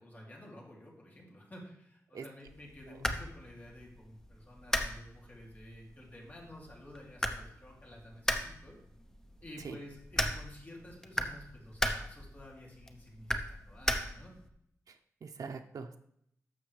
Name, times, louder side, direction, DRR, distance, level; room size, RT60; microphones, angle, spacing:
voice 1, 0.0-8.8 9.4-14.3, left 1 dB, 30° left, -2 dB, 2.7 m, -51 dB
sound 1, 2.5-14.5, left 1 dB, 10° left, 0.7 m, -38 dB
voice 2, 14.9-16.0, right 5 dB, 75° right, 5 dB, 0.6 m, -44 dB
11.5 x 7.0 x 3.3 m, 0.72 s
wide cardioid pair, 120°, 6 cm